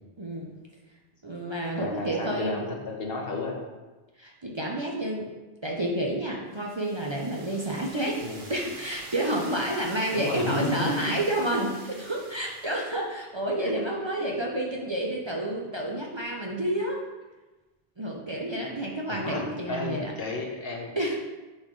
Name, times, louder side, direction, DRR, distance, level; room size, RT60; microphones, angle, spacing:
voice 1, 0.2-0.5 1.2-2.6 4.2-5.3 5.6-8.2 8.5-17.0 18.0-20.1 21.0-21.2, right 1 dB, 30° right, -2 dB, 0.7 m, -29 dB
voice 2, 1.8-3.6 8.2-8.5 10.1-11.2 13.6-13.7 14.2-14.3 19.1-21.0, left 3 dB, 65° left, 1 dB, 1.3 m, -33 dB
sound 1, 6.5-13.1, right 2 dB, 55° right, 1.1 m, -46 dB
10.0 x 4.0 x 3.2 m, 1.2 s
omnidirectional pair, 1.0 m